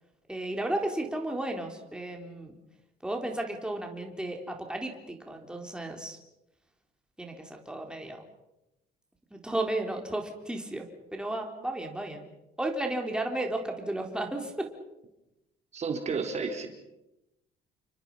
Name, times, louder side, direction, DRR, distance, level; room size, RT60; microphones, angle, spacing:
voice 1, 0.3-2.5 3.0-6.2 7.2-8.2 9.3-10.9 11.1-12.2 12.6-14.7, right 1 dB, 5° right, 2 dB, 4.1 m, -33 dB
voice 2, 15.7-16.7, right 5 dB, 40° right, 4 dB, 4.2 m, -31 dB
30.0 x 24.5 x 5.7 m, 0.93 s
cardioid pair, 110°, 17 cm